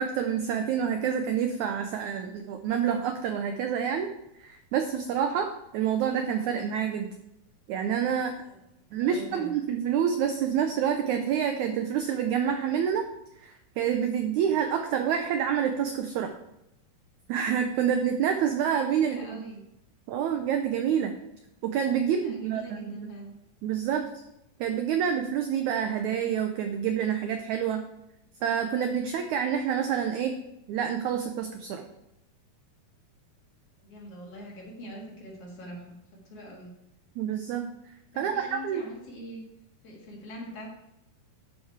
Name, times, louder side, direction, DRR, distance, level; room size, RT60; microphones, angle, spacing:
voice 1, 0.0-4.1 4.4-7.1 7.7-8.4 8.9-13.0 13.4-16.3 17.3-19.4 20.1-21.1 21.6-23.1 23.6-24.1 24.6-27.8 28.4-30.4 30.7-31.8 37.2-37.7 38.2-38.8, right 8 dB, 85° right, 6 dB, 1.7 m, -27 dB
voice 2, 8.9-9.5 19.0-19.6 22.2-23.3 33.8-36.7 38.1-39.5 39.8-40.7, equal, 45° left, -2 dB, 2.6 m, -43 dB
11.5 x 5.7 x 4.6 m, 0.86 s
omnidirectional pair, 4.1 m